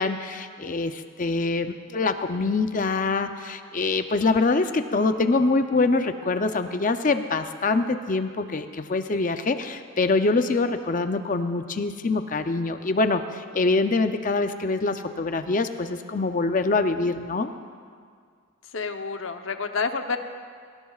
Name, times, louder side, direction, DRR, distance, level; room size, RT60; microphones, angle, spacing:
voice 1, 0.0-17.5, left 3 dB, 40° left, 8 dB, 0.5 m, -24 dB
voice 2, 18.7-20.2, left 4 dB, 70° left, 6 dB, 0.8 m, -29 dB
22.0 x 17.5 x 2.4 m, 2.1 s
head